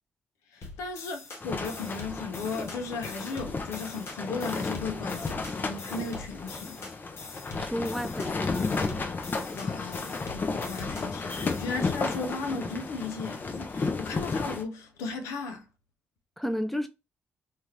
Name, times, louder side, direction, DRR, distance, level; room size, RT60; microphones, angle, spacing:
voice 1, 0.5-6.8 9.5-15.6, left 4 dB, 90° left, 0.5 m, -36 dB
sound 1, 0.6-11.6, left 3 dB, 65° left, 0.9 m, -44 dB
sound 2, 1.4-14.6, left 4 dB, 45° left, 0.6 m, -33 dB
voice 2, 7.6-9.1 16.4-16.9, equal, 5° left, 0.7 m, -33 dB
2.8 x 2.4 x 3.2 m
supercardioid pair, 50°, 5 cm